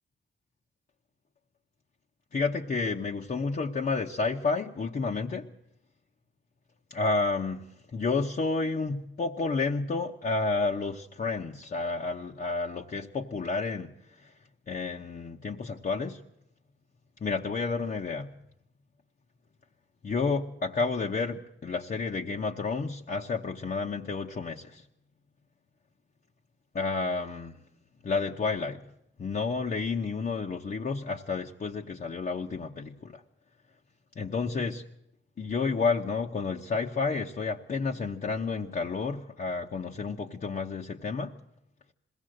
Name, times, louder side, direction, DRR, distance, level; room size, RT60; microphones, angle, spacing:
voice 1, 2.3-5.5 6.9-14.4 14.7-16.2 17.2-18.3 20.0-24.9 26.7-27.6 28.0-28.8 29.2-33.2 34.1-34.8 35.4-41.4, left 4 dB, 45° left, 0.9 m, -30 dB
21.0 x 16.5 x 7.8 m
cardioid pair, 90°, 20 cm